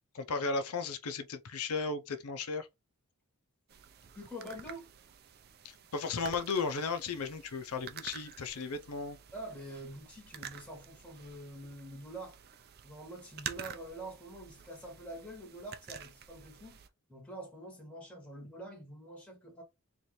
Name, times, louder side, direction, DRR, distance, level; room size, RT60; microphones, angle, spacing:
voice 1, 0.1-2.7 5.6-9.2, left 4 dB, 85° left, 0.6 m, -35 dB
sound 1, 3.7-16.9, right 8 dB, 45° right, 0.5 m, -49 dB
voice 2, 4.1-4.9 9.3-12.4 12.8-16.8 17.1-19.6, right 1 dB, 5° left, 1.3 m, -46 dB
4.3 x 2.6 x 3.1 m
head